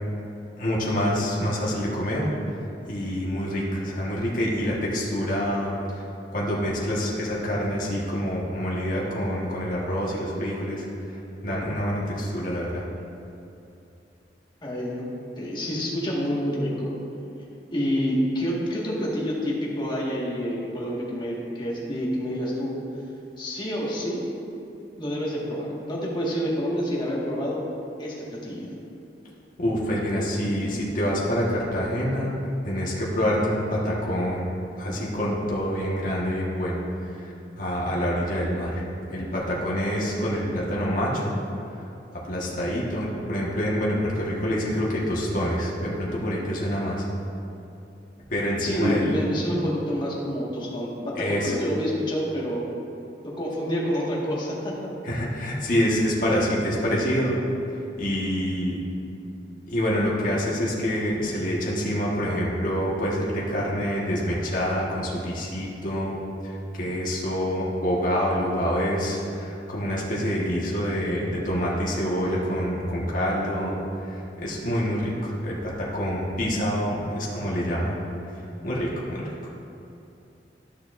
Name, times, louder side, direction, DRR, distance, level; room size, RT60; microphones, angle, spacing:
voice 1, 0.6-2.2 2.9-5.8 6.3-10.8 11.4-12.8 29.6-32.3 32.6-34.4 34.8-36.8 37.6-38.7 39.1-41.4 42.2-47.0 48.3-49.2 51.2-51.5 55.0-57.3 58.0-58.8 59.7-66.1 66.8-73.7 74.4-78.0 78.6-79.2, equal, 50° left, -5 dB, 1.5 m, -26 dB
voice 2, 14.6-15.1 15.4-16.9 17.7-22.8 23.4-24.3 25.0-27.6 28.0-28.7 48.6-52.6 53.2-54.7, equal, 25° left, -6 dB, 1.7 m, -28 dB
13.5 x 6.5 x 2.6 m, 2.7 s
head